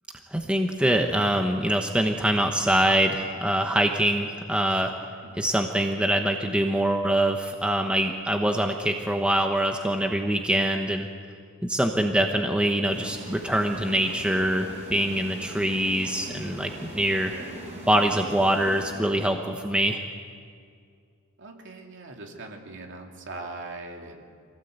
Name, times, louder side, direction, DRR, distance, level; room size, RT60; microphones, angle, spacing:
voice 1, 0.3-4.9 5.3-11.1 11.6-17.3 17.9-20.0, right 1 dB, 5° right, 3 dB, 1.1 m, -24 dB
sound 1, 12.9-19.5, equal, 30° right, 6.4 m, -41 dB
voice 2, 21.4-24.2, right 2 dB, 55° right, 1 dB, 2.9 m, -41 dB
24.5 x 17.0 x 8.1 m, 2.2 s
head